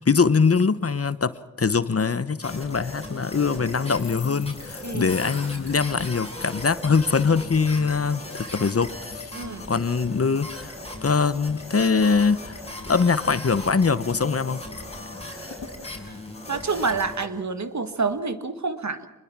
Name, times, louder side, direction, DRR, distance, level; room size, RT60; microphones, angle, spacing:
voice 1, 0.0-1.3 1.6-9.4 9.7-10.7 11.0-12.6 12.9-14.6, left 5 dB, 40° left, 14 dB, 0.9 m, -22 dB
sound 1, 2.4-17.2, left 1 dB, 15° left, 6.2 m, -38 dB
sound 2, 3.9-7.4 7.7-8.0 8.2-8.9 9.4-10.2 10.5-12.1 12.4-12.7 12.9-13.5 13.9-14.0 14.2-14.9 15.2-15.3 15.5-17.4 17.9-18.2, left 5 dB, 75° left, 2.9 m, -48 dB
voice 2, 4.8-5.2 9.3-9.7 16.1-16.2 16.5-19.1, right 4 dB, 50° right, 10 dB, 1.6 m, -28 dB
26.0 x 21.5 x 6.0 m, 1.2 s
wide cardioid pair, 70°, 36 cm